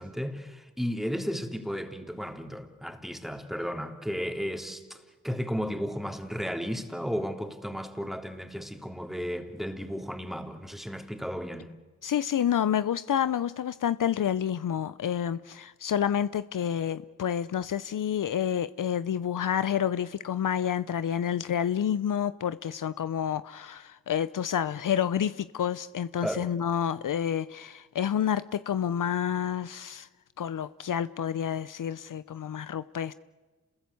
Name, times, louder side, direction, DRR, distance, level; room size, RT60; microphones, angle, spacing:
voice 1, 0.0-11.7 26.2-26.5, equal, ahead, 3.4 m, -34 dB
voice 2, 12.0-30.1 30.4-33.1, left 9 dB, 65° left, 0.7 m, -29 dB
28.0 x 20.5 x 8.4 m
cardioid pair, 45°, 34 cm